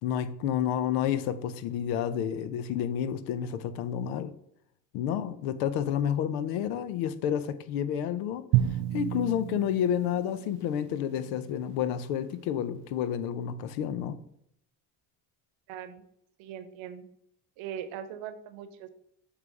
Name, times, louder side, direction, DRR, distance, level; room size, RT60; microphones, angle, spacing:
voice 1, 0.0-4.3 4.9-8.4 8.9-14.2, left 9 dB, 85° left, 0.7 m, -30 dB
Drum, 8.5-11.5, right 13 dB, 55° right, 0.5 m, -31 dB
voice 2, 15.7-16.0 16.4-17.1 17.6-18.9, right 9 dB, 75° right, 0.9 m, -40 dB
7.3 x 3.3 x 4.7 m
supercardioid pair, 85°, 46 cm